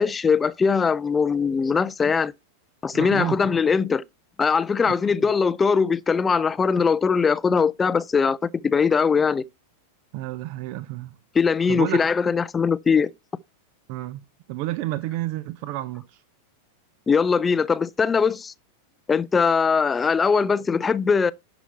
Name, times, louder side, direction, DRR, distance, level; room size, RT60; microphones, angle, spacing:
voice 1, 0.0-2.3 2.8-4.0 4.4-9.4 11.3-13.1 17.1-18.5 19.1-21.3, left 5 dB, 15° left, 0.4 m, -21 dB
voice 2, 2.9-3.4 4.9-5.0 10.1-11.1 11.7-12.0 13.9-14.2 14.5-16.2, right 15 dB, 45° right, 0.7 m, -30 dB
11.0 x 6.0 x 4.3 m
figure-of-eight pair, 90°, 0 cm